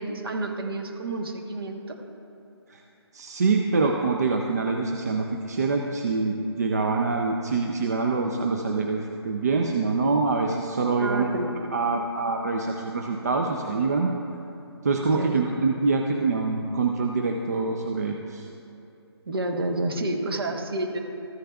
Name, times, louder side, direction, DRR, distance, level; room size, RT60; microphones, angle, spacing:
voice 1, 0.0-2.0 11.0-11.5 15.1-15.5 19.3-21.0, right 2 dB, 55° right, 3 dB, 1.2 m, -29 dB
voice 2, 3.1-11.3 11.7-14.1 14.8-18.5, right 4 dB, 35° right, 2 dB, 0.5 m, -25 dB
14.0 x 9.7 x 2.3 m, 2.7 s
hypercardioid pair, 165°, 14 cm